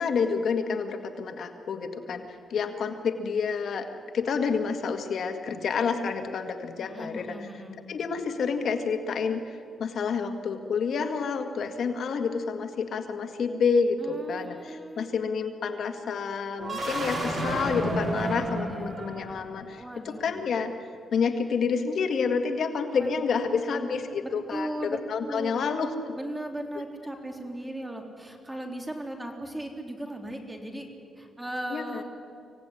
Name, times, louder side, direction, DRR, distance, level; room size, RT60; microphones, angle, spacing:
voice 1, 0.0-3.9 4.1-7.4 7.9-20.7 21.1-26.1 31.7-32.0, left 5 dB, 65° left, 6 dB, 1.9 m, -29 dB
voice 2, 6.8-7.8 14.0-15.1 18.1-19.0 19.8-20.5 22.9-25.0 25.3-25.7 26.2-30.9 31.2-32.0, right 1 dB, 10° right, 3 dB, 3.6 m, -38 dB
sound 1, 16.6-19.6, right 1 dB, 40° right, 5.6 m, -31 dB
25.0 x 17.5 x 9.9 m, 2.5 s
cardioid pair, 110°, 0 cm